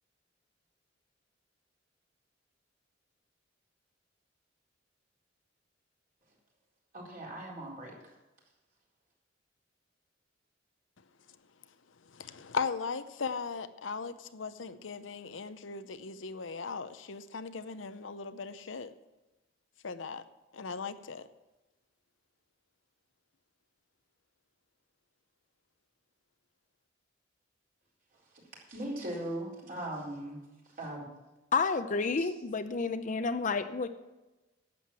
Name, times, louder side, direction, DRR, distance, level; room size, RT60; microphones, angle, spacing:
voice 1, 6.9-8.1 28.7-30.4 30.6-31.1 32.2-32.3, right 1 dB, 45° right, -3 dB, 4.2 m, -39 dB
voice 2, 12.1-18.9 19.8-20.2 20.5-21.3, left 5 dB, 85° left, 12 dB, 0.7 m, -38 dB
voice 3, 31.5-33.9, left 4 dB, 40° left, 10 dB, 0.6 m, -30 dB
11.0 x 7.8 x 7.5 m, 1.1 s
head